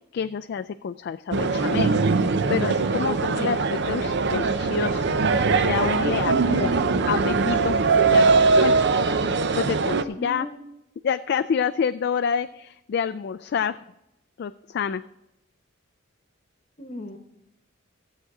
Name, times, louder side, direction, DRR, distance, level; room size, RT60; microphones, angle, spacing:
voice 1, 0.0-5.1 5.6-6.8 7.1-7.8 8.1-8.3 8.6-8.8 9.6-10.5 11.0-13.8 14.4-15.0, left 7 dB, 55° left, 9 dB, 0.3 m, -28 dB
sound 1, 1.3-10.0, right 4 dB, 60° right, 0.6 m, -21 dB
sound 2, 3.8-8.9, equal, ahead, 1.4 m, -37 dB
voice 2, 10.2-10.6 16.8-17.2, left 1 dB, 35° left, 7 dB, 1.0 m, -37 dB
15.0 x 7.6 x 4.8 m, 0.90 s
head